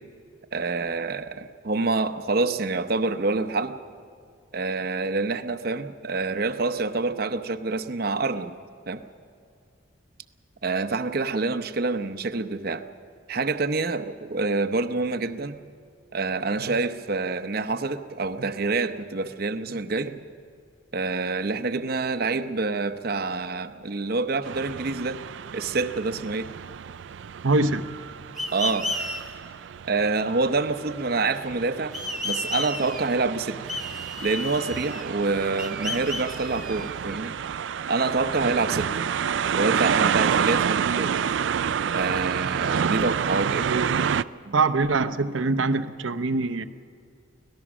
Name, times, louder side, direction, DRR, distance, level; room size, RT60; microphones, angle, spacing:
voice 1, 0.5-3.8 4.5-8.6 8.9-9.0 10.6-12.8 13.3-15.7 16.1-20.2 20.9-25.2 25.5-26.5 28.5-28.9 29.9-31.9 32.2-33.6 34.2-37.3 37.9-38.9 39.5-41.2 41.9-43.7 44.4-44.5, right 3 dB, 50° right, 9 dB, 0.8 m, -27 dB
sound 1, 24.4-44.2, right 7 dB, 65° right, 0.4 m, -29 dB
voice 2, 27.4-27.8 43.7-43.9 44.5-46.6, right 3 dB, 85° right, 11 dB, 0.8 m, -23 dB
sound 2, 28.4-29.2 31.9-33.2 33.7-35.2 35.6-37.2, left 1 dB, ahead, 1.4 m, -33 dB
24.5 x 18.0 x 6.2 m, 2.4 s
head